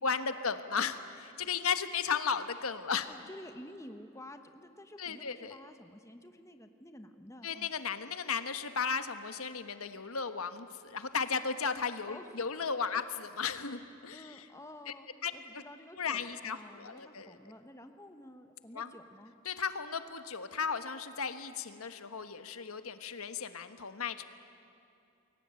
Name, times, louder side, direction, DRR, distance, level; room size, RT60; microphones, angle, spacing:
voice 1, 0.0-3.1 5.0-5.6 7.4-14.5 14.9-15.0 15.2-15.6 16.0-17.4 18.7-18.9 19.4-24.2, left 6 dB, 90° left, 9 dB, 1.4 m, -35 dB
voice 2, 3.1-7.7 12.1-12.4 12.9-13.0 14.1-15.1 15.3-19.4, left 1 dB, 15° left, 7 dB, 1.1 m, -51 dB
29.0 x 22.0 x 9.0 m, 2.7 s
head